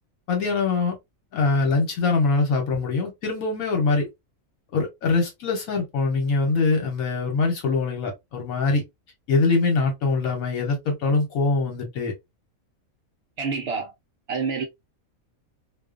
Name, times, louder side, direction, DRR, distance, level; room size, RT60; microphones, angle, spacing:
voice 1, 0.3-1.0 1.3-4.1 4.7-8.8 9.3-12.1, left 3 dB, 75° left, 1.2 m, -23 dB
voice 2, 13.4-13.9 14.3-14.6, right 5 dB, 65° right, 0.6 m, -27 dB
2.4 x 2.4 x 2.3 m
omnidirectional pair, 1.5 m